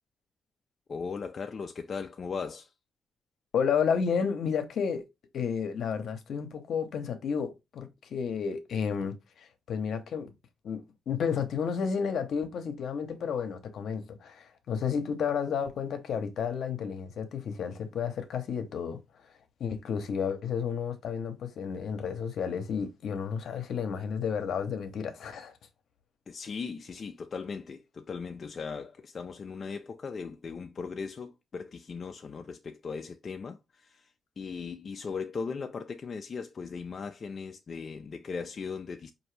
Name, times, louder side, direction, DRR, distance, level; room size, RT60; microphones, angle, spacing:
voice 1, 0.9-2.7 26.3-39.1, left 5 dB, 45° left, 0.4 m, -38 dB
voice 2, 3.5-5.0 5.3-10.3 10.6-19.0 19.6-25.5, left 6 dB, 75° left, 0.8 m, -31 dB
4.7 x 2.6 x 3.2 m
cardioid pair, 95°, 0 cm